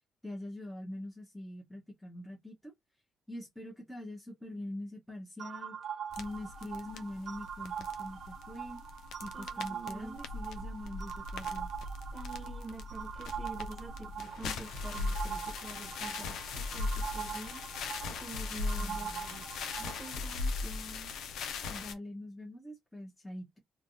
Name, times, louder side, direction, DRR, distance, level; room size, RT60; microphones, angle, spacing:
voice 1, 0.2-2.7 3.3-5.8 6.2-8.8 9.2-11.7 18.8-19.4 21.7-23.6, left 1 dB, 5° left, 1.1 m, -44 dB
sound 1, 5.4-20.2, right 8 dB, 60° right, 0.5 m, -43 dB
sound 2, 6.1-21.9, left 3 dB, 80° left, 0.7 m, -39 dB
voice 2, 9.3-10.2 12.1-17.6 18.1-21.1, right 2 dB, 25° right, 1.1 m, -47 dB
3.3 x 2.5 x 2.7 m
cardioid pair, 90°, 0 cm